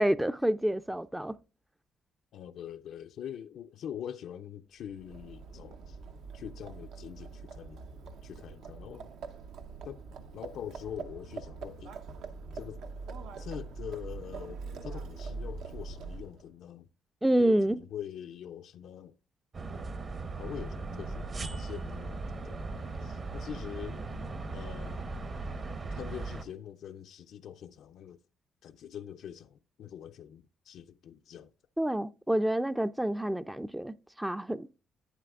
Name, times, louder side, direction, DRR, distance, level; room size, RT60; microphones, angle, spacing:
voice 1, 0.0-1.4 17.2-17.8 31.8-34.8, right 1 dB, 5° right, 0.3 m, -28 dB
voice 2, 2.3-6.0 6.3-7.8 8.2-9.1 9.8-10.0 10.3-11.9 12.5-12.8 13.4-16.9 17.4-19.1 20.3-24.0 24.5-25.1 25.9-28.2 28.6-31.5, left 9 dB, 75° left, 0.3 m, -44 dB
Livestock farm animals working animals, 4.9-16.5, right 4 dB, 80° right, 0.7 m, -43 dB
sound 1, 19.5-26.4, right 3 dB, 45° right, 0.9 m, -38 dB
11.0 x 8.3 x 2.4 m
cardioid pair, 90°, 0 cm